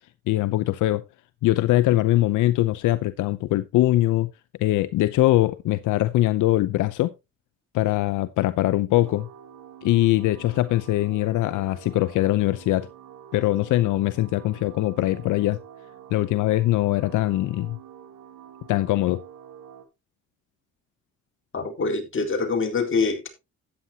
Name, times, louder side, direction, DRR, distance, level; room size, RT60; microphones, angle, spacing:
voice 1, 0.3-1.0 1.4-4.3 4.6-7.1 7.7-9.3 9.8-12.9 13.3-15.6 16.1-17.8 18.7-19.2, left 16 dB, 80° left, 0.7 m, -22 dB
sound 1, 9.0-19.9, right 9 dB, 85° right, 2.2 m, -47 dB
voice 2, 21.5-23.3, left 4 dB, 40° left, 3.9 m, -25 dB
13.0 x 9.6 x 2.8 m
cardioid pair, 90°, 30 cm